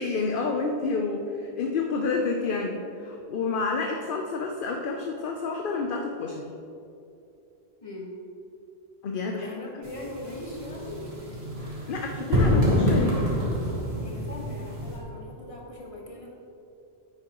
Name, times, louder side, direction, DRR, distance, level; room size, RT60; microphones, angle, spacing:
voice 1, 0.0-6.5 9.0-9.5 11.9-13.2, left 4 dB, 60° left, 2 dB, 0.8 m, -29 dB
voice 2, 7.8-8.2 9.3-11.4 14.0-16.3, left 1 dB, 30° left, -2 dB, 1.5 m, -40 dB
sound 1, 9.8-15.0, equal, 70° right, 1.9 m, -26 dB
9.7 x 8.9 x 3.0 m, 2.6 s
omnidirectional pair, 1.1 m